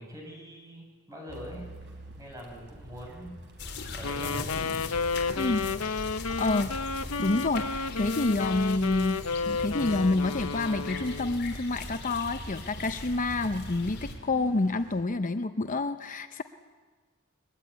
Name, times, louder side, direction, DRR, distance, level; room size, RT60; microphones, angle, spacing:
voice 1, 0.0-1.7 2.2-3.4 3.9-4.8, equal, 15° right, 0 dB, 7.3 m, -43 dB
Car, 1.3-15.0, right 1 dB, 60° right, 4.4 m, -49 dB
sound 1, 3.6-14.1, left 3 dB, 55° left, 4.1 m, -40 dB
Wind instrument woodwind instrument, 4.0-11.5, left 4 dB, 85° left, 0.8 m, -32 dB
voice 2, 5.4-5.7 6.4-6.8 7.2-16.4, left 2 dB, 40° left, 9 dB, 0.7 m, -28 dB
22.5 x 21.5 x 9.4 m, 1.4 s
head